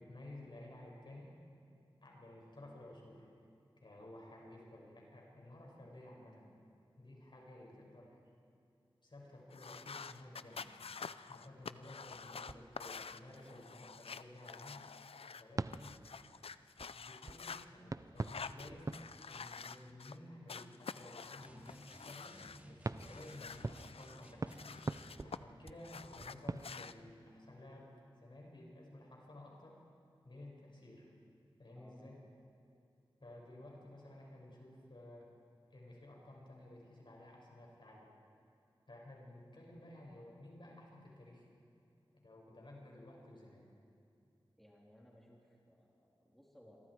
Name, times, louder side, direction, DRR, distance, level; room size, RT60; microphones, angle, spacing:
voice 1, 0.0-1.3 2.0-3.3 3.8-6.5 7.0-8.2 9.0-10.7 11.3-14.8 15.4-16.0 16.9-19.0 19.3-24.6 25.2-29.8 30.2-31.1 31.6-32.2 33.2-35.3 35.7-38.1 38.9-41.5 42.1-43.7, left 1 dB, 55° left, -2 dB, 6.2 m, -54 dB
sound 1, 9.5-15.4 15.7-17.6 18.2-20.2 20.5-22.6 23.0-25.4 25.7-26.9, left 5 dB, 90° left, 0.5 m, -48 dB
sound 2, 12.0-13.3 13.9-14.0 14.6-14.7 15.6-20.3 22.8-27.9, right 3 dB, 35° right, 0.5 m, -46 dB
sound 3, 21.4-25.3, equal, 15° right, 2.6 m, -57 dB
voice 2, 31.7-32.2 44.6-46.8, equal, ahead, -3 dB, 3.6 m, -62 dB
27.0 x 23.5 x 4.8 m, 2.6 s
wide cardioid pair, 55°, 10 cm